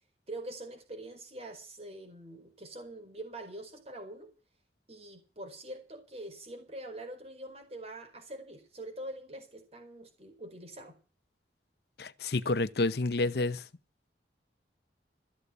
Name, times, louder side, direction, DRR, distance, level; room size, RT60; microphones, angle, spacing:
voice 1, 0.3-4.3 4.9-10.9, right 1 dB, 35° right, 4.7 m, -44 dB
voice 2, 12.0-13.6, left 2 dB, 60° left, 0.8 m, -29 dB
14.5 x 8.2 x 8.3 m
head